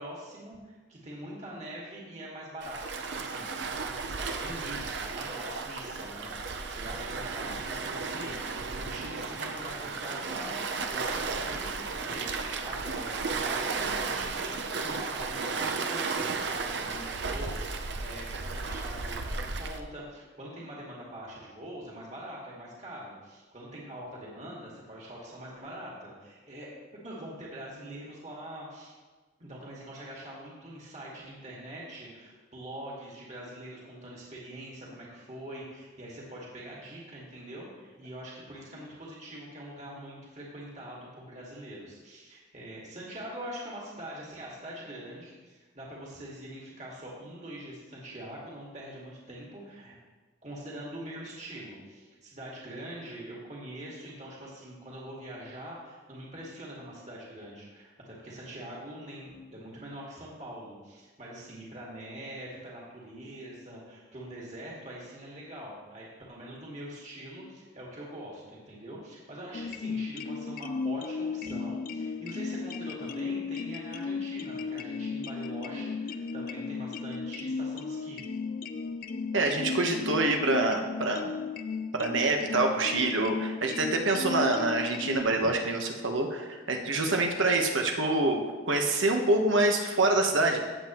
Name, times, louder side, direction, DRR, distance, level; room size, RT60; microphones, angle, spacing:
voice 1, 0.0-2.8 3.1-26.7 27.0-28.9 29.4-50.0 50.4-78.2, right 1 dB, 35° right, -5 dB, 2.1 m, -43 dB
Waves surf, 2.6-19.8, right 4 dB, 60° right, 0.7 m, -34 dB
sound 1, 69.5-85.2, left 4 dB, 45° left, 0.4 m, -35 dB
voice 2, 79.3-81.3 81.9-90.6, right 2 dB, 80° right, 3 dB, 1.3 m, -26 dB
16.0 x 7.9 x 3.1 m, 1.3 s
head